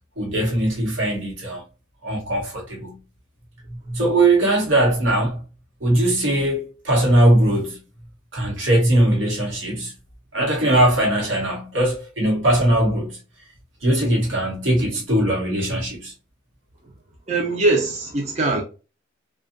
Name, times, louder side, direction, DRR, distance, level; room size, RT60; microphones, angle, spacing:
voice 1, 0.2-1.6 2.0-3.0 3.7-5.4 5.8-7.8 8.3-9.9 10.3-13.2 13.8-16.1, right 1 dB, 80° right, 1.0 m, -20 dB
voice 2, 17.3-18.6, right 2 dB, 35° right, 0.4 m, -21 dB
2.6 x 2.3 x 2.5 m
head